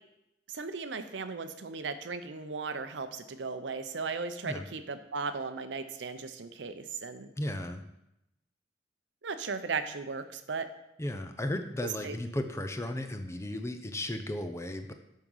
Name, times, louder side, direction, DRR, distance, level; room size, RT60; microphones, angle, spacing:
voice 1, 0.5-7.3 9.2-10.7 12.0-12.1, right 4 dB, 70° right, 9 dB, 0.6 m, -36 dB
voice 2, 7.4-7.8 11.0-14.9, left 1 dB, 15° left, 7 dB, 0.6 m, -35 dB
9.3 x 3.8 x 5.5 m, 0.86 s
head